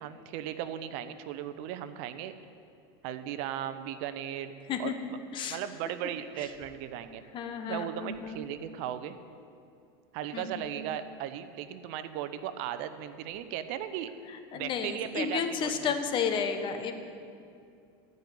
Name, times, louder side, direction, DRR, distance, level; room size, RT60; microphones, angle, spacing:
voice 1, 0.0-2.4 3.0-4.5 4.8-4.9 5.5-7.2 7.7-9.2 10.1-14.1 14.5-15.9, right 10 dB, 60° right, 11 dB, 0.8 m, -37 dB
voice 2, 7.3-8.4 10.3-10.7 14.3-16.9, left 6 dB, 40° left, 7 dB, 1.1 m, -32 dB
14.5 x 5.5 x 9.2 m, 2.4 s
supercardioid pair, 120°, 13 cm